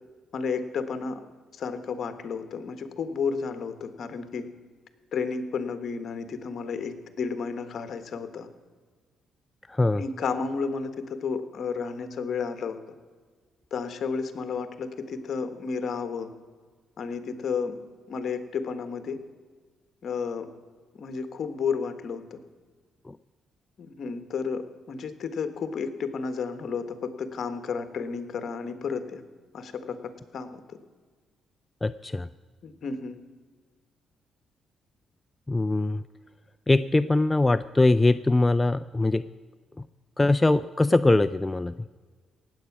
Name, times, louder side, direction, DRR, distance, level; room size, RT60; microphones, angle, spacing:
voice 1, 0.3-1.2 1.5-4.5 5.1-8.5 10.0-12.8 13.7-16.3 17.0-17.7 18.1-19.2 20.0-20.5 20.9-22.4 23.8-24.6 24.9-29.2 29.5-30.0 30.3-30.8 32.6-33.2, left 5 dB, 55° left, 10 dB, 1.3 m, -32 dB
voice 2, 9.7-10.0 23.1-23.2 31.8-32.3 35.5-36.0 36.7-39.2 39.8-39.9 40.2-41.7, left 2 dB, 15° left, 12 dB, 0.3 m, -22 dB
18.0 x 8.1 x 6.0 m, 1.5 s
cardioid pair, 90°, 0 cm